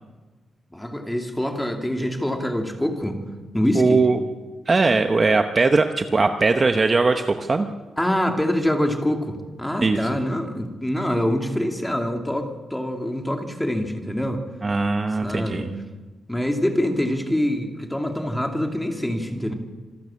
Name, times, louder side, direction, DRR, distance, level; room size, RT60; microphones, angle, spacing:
voice 1, 0.7-3.2 3.5-4.0 8.0-14.4 15.2-15.7 16.3-19.5, left 1 dB, 5° left, 3 dB, 2.6 m, -25 dB
voice 2, 3.7-4.2 4.7-7.7 9.8-10.0 14.6-15.7, right 3 dB, 30° right, 6 dB, 1.0 m, -20 dB
26.5 x 13.5 x 8.6 m, 1.3 s
wide cardioid pair, 145°, 0 cm